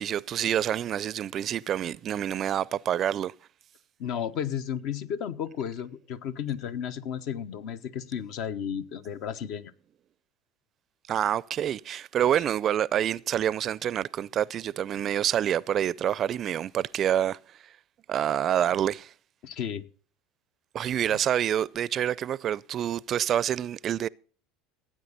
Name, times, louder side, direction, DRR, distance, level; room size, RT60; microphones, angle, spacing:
voice 1, 0.0-3.3 11.1-17.4 17.6-17.7 18.1-19.1 20.7-24.1, right 10 dB, 45° right, 0.4 m, -27 dB
voice 2, 4.0-9.7 19.4-19.8 21.1-21.2, left 8 dB, 60° left, 1.0 m, -33 dB
16.5 x 8.9 x 4.1 m
hypercardioid pair, 85°, 0 cm